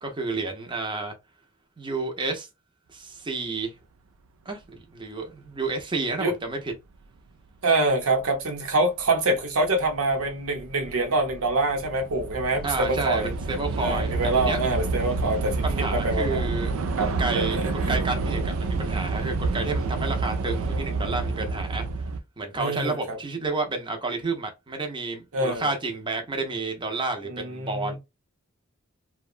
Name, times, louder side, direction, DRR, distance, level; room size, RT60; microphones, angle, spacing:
voice 1, 0.0-1.1 1.8-2.5 2.9-3.7 4.5-6.7 12.6-14.6 15.6-21.9 22.4-28.0, right 3 dB, 25° right, 0.6 m, -30 dB
voice 2, 7.6-13.3 13.8-16.5 17.0-18.0 22.6-23.2 25.3-25.7 27.3-28.0, right 2 dB, 85° right, 0.8 m, -25 dB
Train / Subway metro underground, 8.2-8.3 9.1-9.4 9.6-22.2, right 3 dB, 70° right, 0.4 m, -29 dB
2.8 x 2.2 x 2.4 m
head